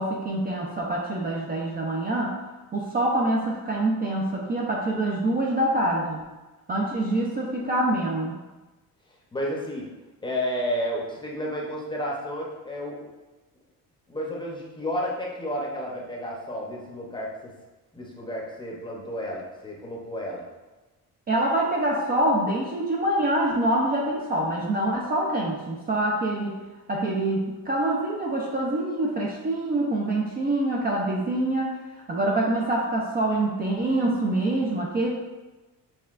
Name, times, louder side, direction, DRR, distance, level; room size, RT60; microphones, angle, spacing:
voice 1, 0.0-2.4 2.7-6.3 6.7-8.4 21.3-26.6 26.9-35.1, right 1 dB, 25° right, -3 dB, 0.4 m, -25 dB
voice 2, 9.3-9.9 10.2-13.0 14.1-17.5 17.9-20.4, equal, 15° left, -3 dB, 0.7 m, -31 dB
6.5 x 3.3 x 2.4 m, 1.1 s
cardioid pair, 160°, 35 cm